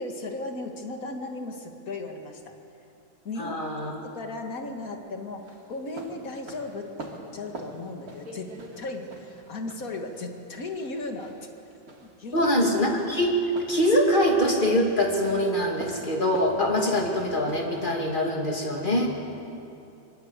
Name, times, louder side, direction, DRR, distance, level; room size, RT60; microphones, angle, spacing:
voice 1, 0.0-2.5 3.2-3.6 3.8-11.3 12.0-12.5, left 2 dB, 45° left, 3 dB, 2.4 m, -36 dB
voice 2, 3.4-3.9 12.3-13.3 13.7-19.1, left 1 dB, 25° left, 1 dB, 2.8 m, -24 dB
sound 1, 3.6-18.0, right 2 dB, 45° right, 3.3 m, -45 dB
25.0 x 23.0 x 8.3 m, 2.7 s
omnidirectional pair, 2.2 m